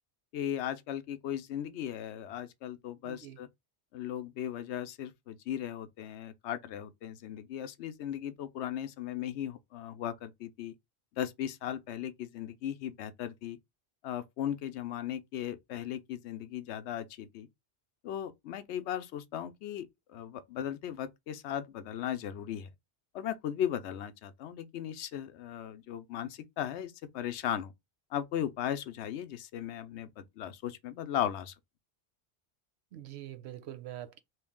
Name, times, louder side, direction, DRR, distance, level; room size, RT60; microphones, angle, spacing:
voice 1, 0.3-3.5 3.9-10.7 11.2-13.6 14.0-17.5 18.0-22.7 23.1-27.7 28.1-31.5, left 10 dB, 75° left, 0.8 m, -37 dB
voice 2, 3.0-3.4 32.9-34.2, right 12 dB, 75° right, 0.9 m, -44 dB
3.1 x 2.7 x 3.5 m
omnidirectional pair, 1.2 m